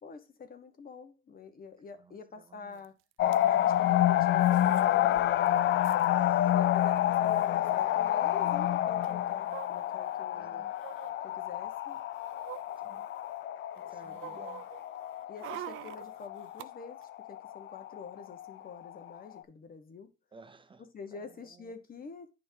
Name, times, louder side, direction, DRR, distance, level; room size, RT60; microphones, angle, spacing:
voice 1, 0.0-3.0 3.5-5.3 6.5-10.7 11.2-12.0 13.9-14.4 15.3-20.1 20.9-22.3, left 5 dB, 45° left, 1.3 m, -47 dB
voice 2, 2.0-2.8 6.2-6.8 10.3-10.7 12.8-13.1 13.8-14.7 20.3-20.8 21.1-21.2 21.5-21.7, right 4 dB, 25° right, 0.6 m, -56 dB
sound 1, 2.8-2.9 3.1-3.4 4.4-4.9 5.2-5.3 5.5-6.1 6.9-7.0 7.2-7.4 9.0-10.2 10.7-11.1 11.7-13.4 13.8-16.7 17.0-17.1, right 15 dB, 80° right, 0.4 m, -47 dB
sound 2, 3.2-19.1 19.4-19.5, left 12 dB, 65° left, 0.4 m, -29 dB
10.0 x 3.8 x 2.8 m
cardioid pair, 90°, 20 cm